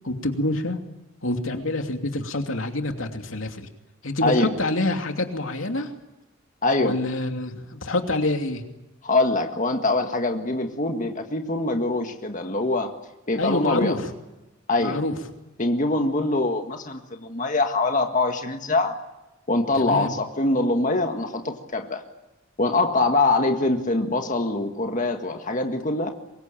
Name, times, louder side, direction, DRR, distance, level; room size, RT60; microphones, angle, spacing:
voice 1, 0.0-0.8 1.2-3.7 4.0-5.9 6.8-8.6 13.4-14.1 14.8-15.2 19.7-20.1, left 2 dB, 85° left, 4 dB, 2.8 m, -26 dB
voice 2, 4.2-4.5 6.6-7.0 9.0-12.9 13.3-14.0 14.7-15.0 15.6-19.0 19.5-22.0 22.6-26.1, left 2 dB, 40° left, 4 dB, 1.8 m, -23 dB
24.5 x 22.0 x 8.9 m, 0.99 s
head